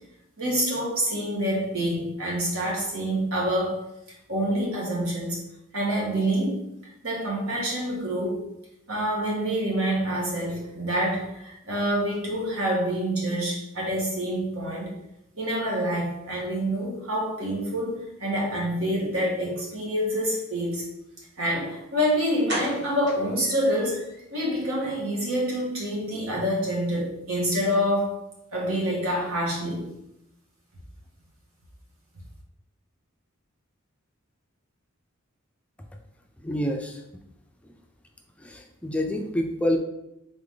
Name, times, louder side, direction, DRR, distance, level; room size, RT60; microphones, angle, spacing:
voice 1, 0.4-3.8 4.3-5.4 5.7-8.4 8.9-14.9 15.3-20.9 21.4-24.0 24.3-28.2 28.5-29.9, equal, 80° right, -3 dB, 1.5 m, -27 dB
sound 1, 21.8-21.9 22.5-24.2 24.6-24.7 25.1-25.2 25.5-25.6, right 1 dB, 55° right, 1.4 m, -35 dB
voice 2, 36.4-37.0 38.4-39.8, left 1 dB, 5° left, 2 dB, 0.4 m, -27 dB
4.0 x 3.5 x 3.7 m, 0.83 s
head